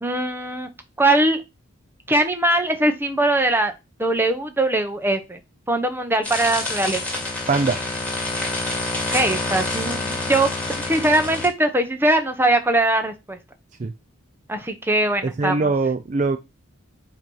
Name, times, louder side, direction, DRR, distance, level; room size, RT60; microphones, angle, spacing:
voice 1, 0.0-0.7 1.0-1.4 2.1-3.7 4.0-5.4 5.7-7.0 9.1-13.4 14.5-15.7, right 1 dB, 10° right, 0.9 m, -21 dB
sound 1, 6.2-11.5, left 2 dB, 5° left, 2.3 m, -27 dB
voice 2, 7.5-7.8 13.8-13.9 15.2-16.4, right 3 dB, 35° right, 0.4 m, -22 dB
7.6 x 3.0 x 5.4 m
head